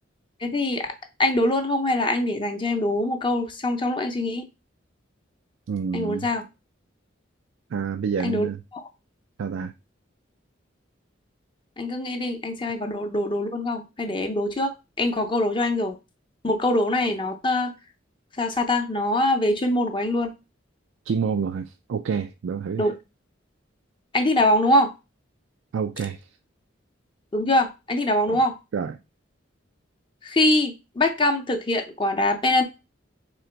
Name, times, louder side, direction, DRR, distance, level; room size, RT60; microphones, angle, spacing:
voice 1, 0.4-0.9 1.2-4.4 5.9-6.4 8.2-8.5 8.7-8.8 11.8-16.0 16.4-17.7 18.4-20.3 22.8-22.9 24.1-24.9 27.3-28.6 30.2-32.6, left 1 dB, 25° left, 0.6 m, -23 dB
voice 2, 5.7-6.3 7.7-8.6 9.4-9.7 21.1-22.9 25.7-26.2 28.3-28.4 28.7-29.0, right 6 dB, 80° right, 0.4 m, -28 dB
3.8 x 2.9 x 4.4 m
head